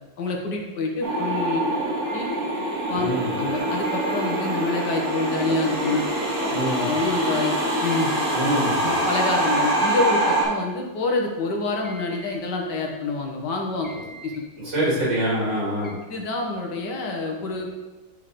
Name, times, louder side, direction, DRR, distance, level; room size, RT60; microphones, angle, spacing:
voice 1, 0.2-1.6 2.1-2.3 2.9-3.1 3.3-6.0 6.4-6.5 6.8-7.5 7.8-8.1 8.8-13.9 14.2-14.3 16.1-17.8, left 3 dB, 65° left, 1 dB, 1.6 m, -27 dB
sound 1, 1.0-10.4, right 1 dB, 50° right, 2.4 m, -25 dB
sound 2, 2.0-2.5 3.8-4.5 5.8-6.5 7.8-8.5 9.8-10.5 11.8-12.5 13.8-14.5 15.8-15.9, right 2 dB, 10° left, 1.1 m, -44 dB
voice 2, 6.5-6.9 8.3-8.7 14.6-16.0, equal, 70° right, -6 dB, 3.4 m, -25 dB
9.7 x 3.7 x 5.0 m, 1.2 s
omnidirectional pair, 2.0 m